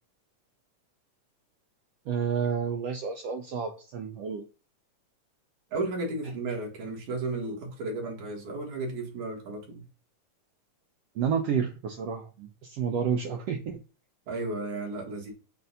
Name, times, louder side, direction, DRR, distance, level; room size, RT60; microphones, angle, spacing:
voice 1, 2.1-4.4 11.2-13.8, right 7 dB, 85° right, 4 dB, 1.3 m, -30 dB
voice 2, 5.7-9.8 14.3-15.3, right 2 dB, 70° right, 0 dB, 3.2 m, -33 dB
6.7 x 2.6 x 5.4 m, 0.34 s
omnidirectional pair, 3.6 m